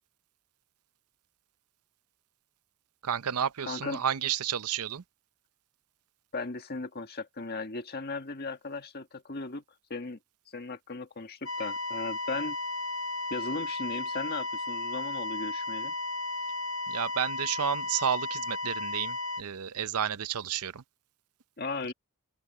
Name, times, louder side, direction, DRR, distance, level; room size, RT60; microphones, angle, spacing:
voice 1, 3.0-5.0 16.9-20.8, right 8 dB, 80° right, 0.6 m, -31 dB
voice 2, 3.7-4.0 6.3-9.6 9.9-10.2 10.5-12.6 13.3-15.9 21.6-21.9, left 3 dB, 45° left, 1.8 m, -37 dB
sound 1, 11.5-19.4, left 2 dB, 70° left, 1.6 m, -34 dB
open air
head